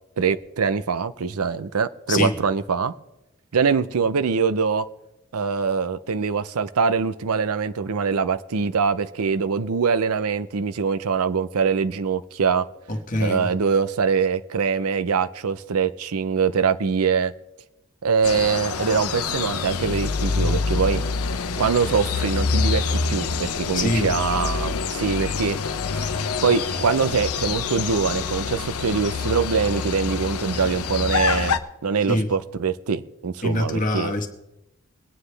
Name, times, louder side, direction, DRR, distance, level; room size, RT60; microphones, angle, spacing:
voice 1, 0.2-2.9 3.5-4.8 5.3-12.6 13.2-17.3 18.0-21.0 21.6-25.6 25.9-26.1 26.4-34.1, right 5 dB, 85° right, 13 dB, 0.6 m, -23 dB
voice 2, 12.9-13.5 23.7-24.1 32.1-32.3 33.4-34.3, left 1 dB, 35° left, 5 dB, 1.4 m, -24 dB
sound 1, 18.2-31.6, left 4 dB, 90° left, 0.8 m, -26 dB
22.5 x 9.5 x 3.3 m, 0.92 s
head